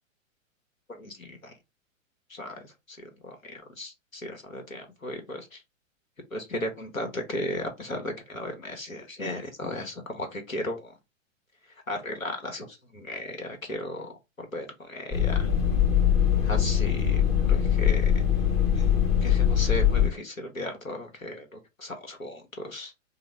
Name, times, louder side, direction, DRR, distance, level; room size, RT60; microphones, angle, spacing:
voice 1, 0.9-1.5 2.3-5.6 6.3-10.9 11.9-14.1 14.4-15.5 16.4-18.2 18.7-18.9 19.2-23.1, left 1 dB, 90° left, 1.2 m, -36 dB
sound 1, 15.1-20.1, left 9 dB, 15° left, 0.6 m, -22 dB
3.8 x 2.2 x 3.3 m
figure-of-eight pair, 110°, 40 cm